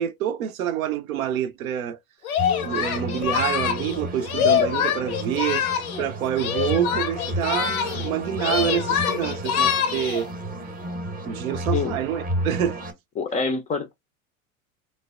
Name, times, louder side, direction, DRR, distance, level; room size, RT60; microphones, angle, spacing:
voice 1, 0.0-2.0 2.6-5.7 6.0-10.3 11.3-12.8, right 10 dB, 75° right, 0.5 m, -27 dB
Singing, 2.2-6.1 6.3-8.1 8.4-10.3, left 8 dB, 80° left, 0.6 m, -25 dB
sound 1, 2.4-12.9, right 1 dB, 20° right, 0.7 m, -33 dB
voice 2, 13.2-13.9, left 4 dB, 20° left, 0.3 m, -26 dB
3.2 x 2.0 x 2.3 m
hypercardioid pair, 80°, 42 cm